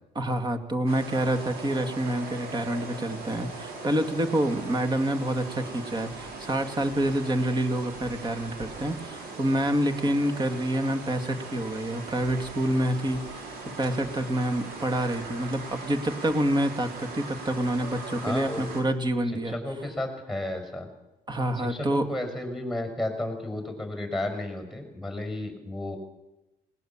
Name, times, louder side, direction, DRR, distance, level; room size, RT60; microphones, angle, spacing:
voice 1, 0.1-19.5 21.3-22.1, right 1 dB, 25° right, 7 dB, 2.3 m, -27 dB
sound 1, 0.9-18.8, right 3 dB, 70° right, 5.9 m, -40 dB
voice 2, 18.2-18.6 19.4-20.9 21.5-26.0, left 1 dB, ahead, 5 dB, 6.3 m, -33 dB
20.0 x 19.0 x 7.4 m, 0.98 s
cardioid pair, 110°, 17 cm